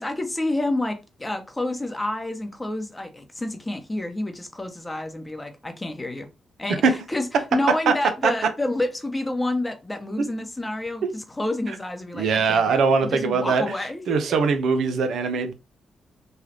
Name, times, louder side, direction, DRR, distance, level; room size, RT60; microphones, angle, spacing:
voice 1, 0.0-6.3 6.6-12.8 13.1-14.0, left 1 dB, 20° left, 0.8 m, -29 dB
voice 2, 12.1-13.6 14.1-15.5, right 5 dB, 70° right, 0.5 m, -21 dB
3.2 x 2.4 x 2.8 m
hypercardioid pair, 40°, 0 cm